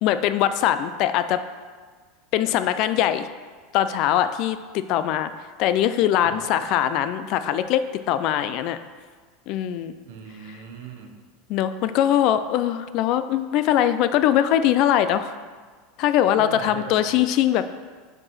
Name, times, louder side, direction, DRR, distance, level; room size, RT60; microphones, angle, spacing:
voice 1, 0.0-1.4 2.3-3.3 3.7-5.3 5.6-7.8 8.1-8.8 9.5-9.9 11.5-15.3 16.0-17.6, left 11 dB, 45° left, 12 dB, 0.3 m, -21 dB
voice 2, 6.2-6.6 10.0-11.2 16.4-17.2, right 6 dB, 70° right, 4 dB, 0.9 m, -38 dB
5.3 x 4.8 x 5.5 m, 1.5 s
supercardioid pair, 155°, 0 cm